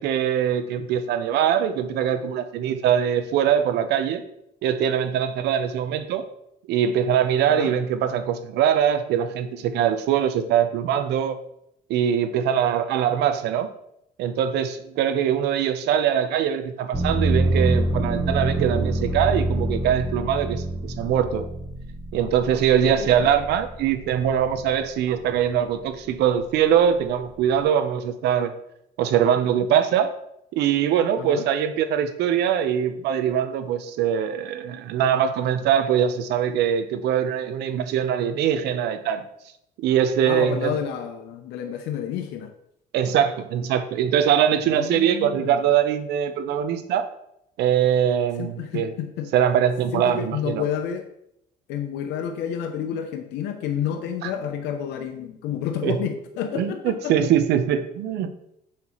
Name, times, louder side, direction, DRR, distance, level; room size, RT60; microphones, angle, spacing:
voice 1, 0.0-4.2 4.6-6.2 6.7-11.4 11.9-13.7 14.2-21.5 22.1-28.5 29.0-30.1 30.6-39.3 39.8-40.8 42.9-47.1 47.6-48.9 49.3-50.6 54.2-54.3 55.8-56.0 56.5-58.4, right 9 dB, 80° right, 9 dB, 0.8 m, -22 dB
sound 1, 16.9-24.7 25.2-26.0, right 2 dB, 5° right, 1.2 m, -26 dB
voice 2, 23.0-23.3 31.2-31.4 40.3-42.5 44.6-45.6 48.4-49.3 49.9-51.0 51.7-57.3, left 9 dB, 85° left, 6 dB, 0.7 m, -30 dB
7.3 x 5.8 x 3.1 m, 0.77 s
cardioid pair, 110°, 17 cm